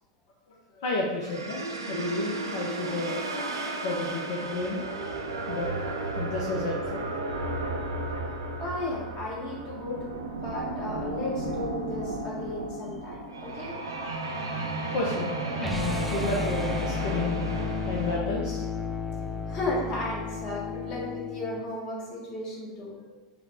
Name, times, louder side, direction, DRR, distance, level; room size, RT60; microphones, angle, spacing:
voice 1, 0.7-1.6 1.9-3.2 3.8-4.8 5.5-7.2 14.9-18.6, left 2 dB, 60° left, -2 dB, 0.5 m, -32 dB
sound 1, 1.2-18.2, right 2 dB, 80° right, 0.4 m, -33 dB
voice 2, 8.6-13.8 19.1-23.0, left 1 dB, 45° left, -4 dB, 1.4 m, -35 dB
sound 2, 15.6-21.6, left 4 dB, ahead, 0.4 m, -33 dB
4.6 x 2.1 x 3.5 m, 1.2 s
figure-of-eight pair, 85°, 2 cm